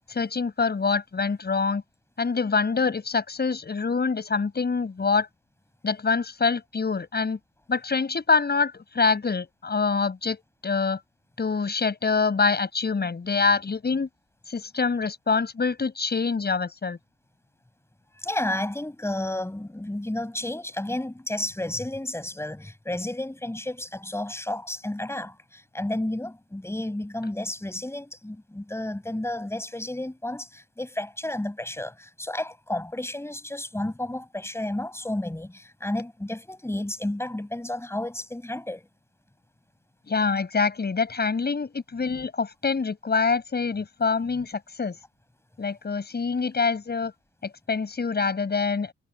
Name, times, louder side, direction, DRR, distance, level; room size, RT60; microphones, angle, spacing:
voice 1, 0.1-1.8 2.2-5.3 5.8-7.4 7.7-11.0 11.4-14.1 14.5-17.0 40.1-45.0 45.6-47.1 47.4-48.9, left 4 dB, 35° left, 7.6 m, -25 dB
voice 2, 18.2-38.9, left 1 dB, 10° left, 5.9 m, -32 dB
cardioid pair, 90°, 30 cm